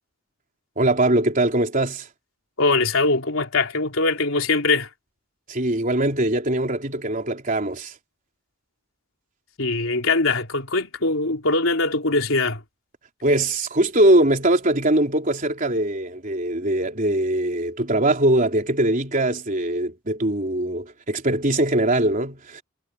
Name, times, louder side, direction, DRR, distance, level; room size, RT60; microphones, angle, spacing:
voice 1, 0.8-2.1 5.5-7.9 13.2-22.6, right 1 dB, 40° right, 3.8 m, -21 dB
voice 2, 2.6-4.9 9.6-12.6, left 3 dB, 85° left, 3.6 m, -22 dB
head